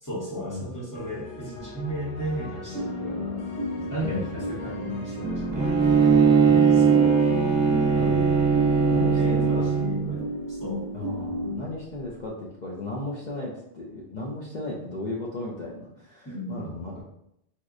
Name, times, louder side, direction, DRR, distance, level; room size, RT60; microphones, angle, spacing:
voice 1, 0.0-3.4 3.8-6.2 6.7-7.2 8.7-10.9 16.2-16.7, right 1 dB, 20° left, -7 dB, 0.8 m, -35 dB
sound 1, 0.9-11.0, left 1 dB, 70° left, 0.9 m, -41 dB
sound 2, 2.6-11.6, equal, 60° right, 0.6 m, -32 dB
voice 2, 4.0-4.4 6.5-7.0 7.9-8.3 8.9-9.7 10.1-10.3 10.9-17.0, left 2 dB, 55° left, -4 dB, 0.5 m, -35 dB
Bowed string instrument, 5.5-10.2, right 6 dB, 25° right, 0.7 m, -20 dB
4.3 x 2.1 x 2.5 m, 0.78 s
omnidirectional pair, 1.3 m